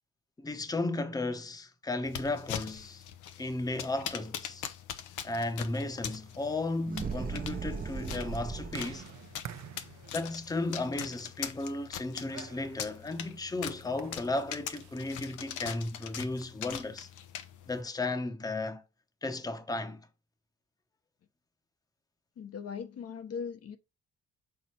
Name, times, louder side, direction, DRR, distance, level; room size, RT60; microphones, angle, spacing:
voice 1, 0.4-3.0 3.4-4.6 5.2-9.1 10.1-17.1 17.7-18.8 19.2-20.1, left 2 dB, 10° left, 0.9 m, -34 dB
sound 1, 2.0-17.8, left 10 dB, 85° left, 0.8 m, -42 dB
sound 2, 6.1-15.1, right 10 dB, 65° right, 0.8 m, -51 dB
sound 3, 6.9-9.1, right 5 dB, 30° right, 0.7 m, -37 dB
voice 2, 22.4-23.8, left 6 dB, 50° left, 0.9 m, -39 dB
6.6 x 4.1 x 4.4 m
cardioid pair, 90°, 30 cm